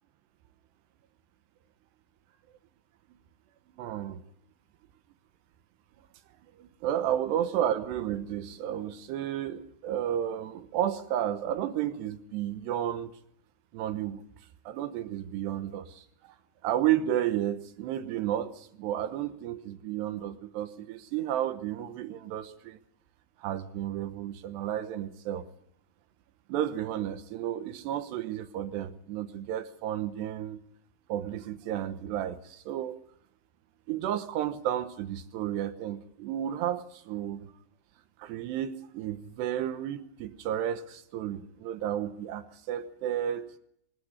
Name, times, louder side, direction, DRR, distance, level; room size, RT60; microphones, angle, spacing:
voice 1, 3.8-4.2 6.6-13.1 13.7-14.2 14.7-16.3 16.6-22.8 23.4-25.4 26.5-30.6 31.1-33.0 33.9-37.5 38.2-43.5, right 11 dB, 75° right, 10 dB, 3.0 m, -32 dB
24.0 x 13.5 x 8.5 m, 0.74 s
omnidirectional pair, 5.4 m